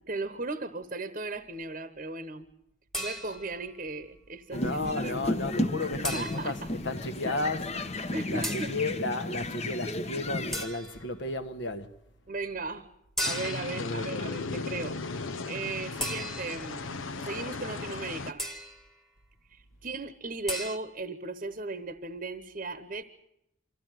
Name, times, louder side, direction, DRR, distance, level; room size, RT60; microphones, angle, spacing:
voice 1, 0.1-2.5 3.0-5.4 6.0-6.7 8.1-8.8 12.3-12.9 13.2-15.0 15.3-18.4 19.5-23.0, right 3 dB, 40° right, 1.0 m, -37 dB
sound 1, 2.9-3.6 6.0-6.7 8.4-8.8 10.5-11.1 13.2-13.8 16.0-16.7 18.4-18.9 20.5-20.8, equal, ahead, 1.4 m, -35 dB
voice 2, 4.5-6.5 6.8-11.9 13.8-14.3, left 2 dB, 65° left, 1.4 m, -33 dB
sound 2, 4.5-10.7, left 1 dB, 35° left, 1.0 m, -33 dB
sound 3, 13.2-18.3, left 3 dB, 90° left, 0.9 m, -36 dB
24.0 x 15.0 x 9.1 m
head